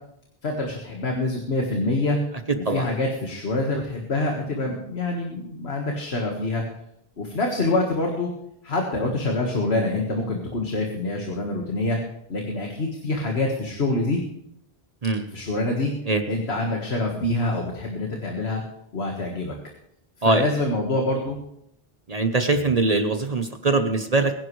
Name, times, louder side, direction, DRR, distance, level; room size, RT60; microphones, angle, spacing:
voice 1, 0.4-2.2 2.7-6.6 7.2-8.3 8.6-12.0 12.3-14.2 15.3-15.9 16.3-18.6 18.9-19.5 20.2-21.4, left 2 dB, 90° left, 1 dB, 2.0 m, -26 dB
voice 2, 2.5-2.9 15.0-15.2 16.1-16.2 20.2-20.4 22.1-24.3, right 3 dB, 40° right, 7 dB, 1.0 m, -22 dB
22.0 x 10.5 x 3.2 m, 0.75 s
omnidirectional pair, 1.0 m